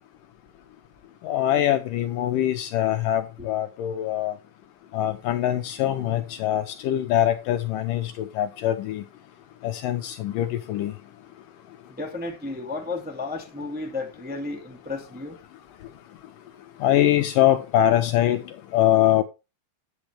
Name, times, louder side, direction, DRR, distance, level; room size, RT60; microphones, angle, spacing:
voice 1, 1.2-4.4 4.9-9.0 9.6-10.9 16.8-19.2, left 12 dB, 75° left, 2.1 m, -23 dB
voice 2, 11.9-15.4, left 3 dB, 5° right, 1.1 m, -33 dB
10.0 x 8.8 x 3.2 m
omnidirectional pair, 4.3 m